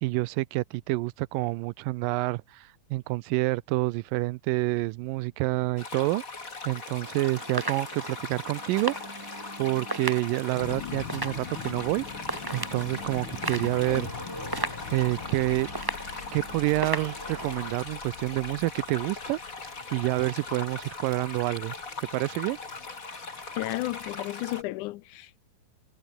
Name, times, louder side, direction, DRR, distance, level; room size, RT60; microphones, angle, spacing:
voice 1, 0.0-6.2 6.7-9.0 9.6-12.0 12.5-14.1 14.9-15.7 16.3-19.4 19.9-21.8 22.1-22.6, right 20 dB, 90° right, 2.3 m, -28 dB
sound 1, 5.8-24.6, left 4 dB, 25° left, 3.0 m, -40 dB
sound 2, 7.0-17.8, right 1 dB, 10° right, 1.4 m, -37 dB
sound 3, 10.5-24.2, left 10 dB, 55° left, 1.5 m, -44 dB
voice 2, 13.6-14.1 23.5-25.4, left 18 dB, 80° left, 1.9 m, -33 dB
omnidirectional pair, 3.8 m